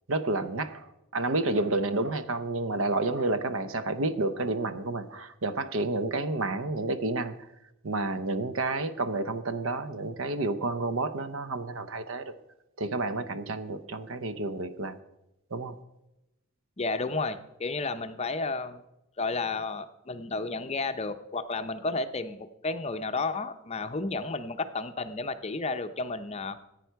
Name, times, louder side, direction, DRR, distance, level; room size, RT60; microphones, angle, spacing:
voice 1, 0.1-7.3 7.8-12.3 12.8-15.0 15.5-15.7, right 2 dB, 60° right, 12 dB, 0.7 m, -30 dB
voice 2, 16.8-18.8 19.2-26.6, left 3 dB, 30° left, 9 dB, 0.6 m, -32 dB
14.5 x 9.2 x 4.6 m, 0.92 s
head